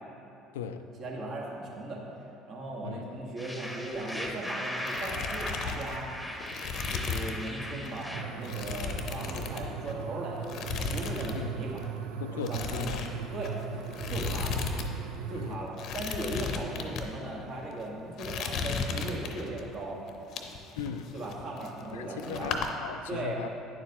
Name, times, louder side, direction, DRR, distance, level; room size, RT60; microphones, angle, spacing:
voice 1, 1.0-2.0 2.5-6.1 6.9-11.9 12.3-13.0 13.3-13.6 14.1-14.6 15.3-20.0 21.1-22.6 23.1-23.4, right 2 dB, 55° right, -3 dB, 1.6 m, -38 dB
sound 1, 3.4-8.2, equal, ahead, 1.0 m, -38 dB
sound 2, 3.9-4.5 4.8-7.5 7.8-8.0 8.4-10.0 10.4-11.4 11.6-11.9 12.4-14.9 15.1-15.2 15.7-17.1 17.6-17.8 18.2-19.6 20.1-21.9 22.2-22.7, left 5 dB, 60° left, 0.7 m, -35 dB
sound 3, 8.1-15.6, right 8 dB, 75° right, 0.3 m, -38 dB
voice 2, 12.2-13.0 15.3-15.7 20.8-21.1 21.9-23.5, left 7 dB, 85° left, 8 dB, 0.3 m, -37 dB
9.3 x 7.0 x 2.9 m, 2.9 s
hypercardioid pair, 65°, 0 cm